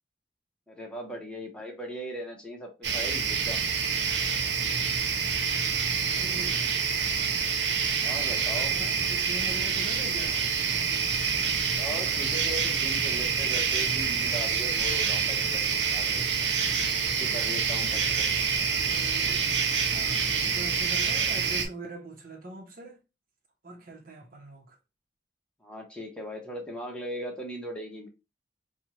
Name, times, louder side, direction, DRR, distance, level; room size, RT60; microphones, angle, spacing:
voice 1, 0.7-3.7 8.0-8.8 11.8-16.3 17.0-18.3 25.6-28.1, equal, 5° left, 0.9 m, -39 dB
sound 1, 2.8-21.7, right 6 dB, 80° right, 0.7 m, -27 dB
voice 2, 5.8-6.8 8.3-10.6 18.7-19.5 19.8-23.0 23.6-24.8, right 2 dB, 55° right, 1.0 m, -43 dB
4.4 x 2.3 x 3.0 m
head